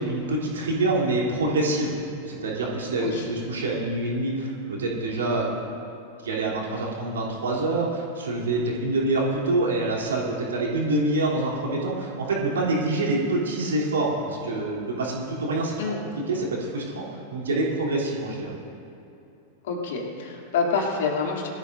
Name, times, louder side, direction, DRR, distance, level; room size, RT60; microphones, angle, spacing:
voice 1, 0.0-1.9 2.2-5.6 6.2-18.5, right 2 dB, 65° right, -3 dB, 3.2 m, -26 dB
voice 2, 19.6-21.5, left 5 dB, 55° left, -1 dB, 2.8 m, -27 dB
22.0 x 13.5 x 2.6 m, 2.8 s
figure-of-eight pair, 90°, 0 cm